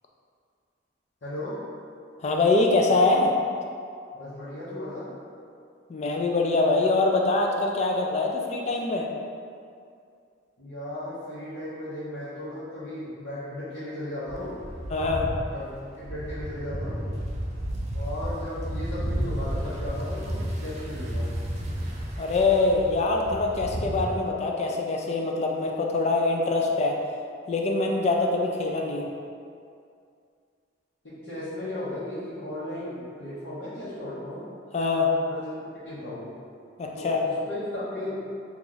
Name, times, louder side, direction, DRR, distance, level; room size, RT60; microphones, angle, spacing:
voice 1, 1.2-1.6 4.1-5.1 10.6-14.6 15.5-15.7 16.0-17.1 17.9-21.3 31.0-34.5 35.3-35.5 35.8-36.3 37.0-38.1, left 1 dB, 75° left, -14 dB, 0.9 m, -36 dB
voice 2, 2.2-3.3 5.9-9.1 14.9-15.3 22.2-27.0 27.5-29.1 34.7-35.1 36.8-37.2, left 3 dB, 35° left, 1 dB, 0.3 m, -24 dB
sound 1, 14.3-24.0, equal, 35° right, 0.4 m, -32 dB
2.9 x 2.4 x 3.8 m, 2.4 s
head